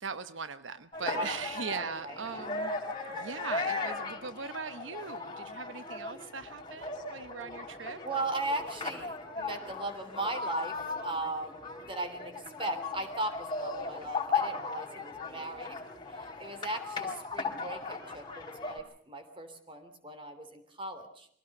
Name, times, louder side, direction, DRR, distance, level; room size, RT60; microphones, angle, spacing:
voice 1, 0.0-2.8 3.1-8.0, right 5 dB, 85° right, 12 dB, 0.9 m, -40 dB
sound 1, 0.9-18.8, left 4 dB, 25° left, 4.3 m, -37 dB
voice 2, 1.7-2.2 8.0-10.8 11.0-12.3 12.6-15.8 16.1-21.3, right 2 dB, 30° right, 8 dB, 3.3 m, -37 dB
24.0 x 17.5 x 6.7 m, 0.65 s
head